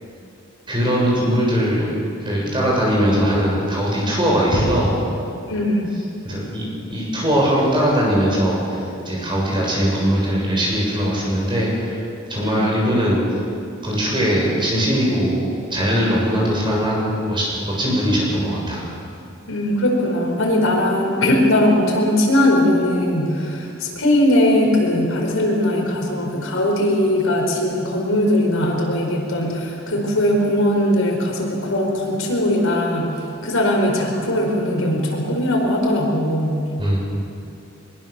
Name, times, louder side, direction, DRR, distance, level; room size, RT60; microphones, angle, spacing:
voice 1, 0.7-1.9 2.2-5.0 6.2-8.8 9.1-12.0 12.3-13.2 13.8-18.9 36.8-37.0, equal, 25° right, -4 dB, 7.0 m, -20 dB
voice 2, 5.5-5.9 12.4-12.6 19.5-33.1 33.4-36.6, left 1 dB, 80° left, 0 dB, 4.7 m, -19 dB
23.0 x 22.0 x 7.0 m, 2.6 s
head